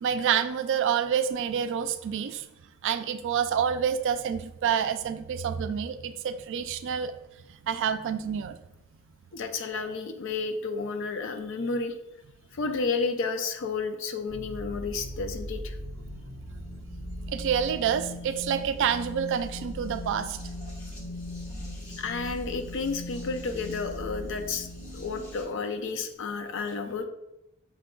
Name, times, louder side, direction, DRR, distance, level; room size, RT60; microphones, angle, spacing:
voice 1, 0.0-2.5 2.8-7.1 7.6-8.6 17.3-20.4, right 8 dB, 60° right, 10 dB, 0.3 m, -28 dB
voice 2, 9.3-11.9 12.5-15.8 22.0-24.7 24.9-27.1, left 4 dB, 65° left, 7 dB, 0.4 m, -31 dB
sound 1, 14.3-25.4, left 1 dB, 85° left, 1.5 m, -39 dB
5.8 x 2.2 x 3.7 m, 0.90 s
head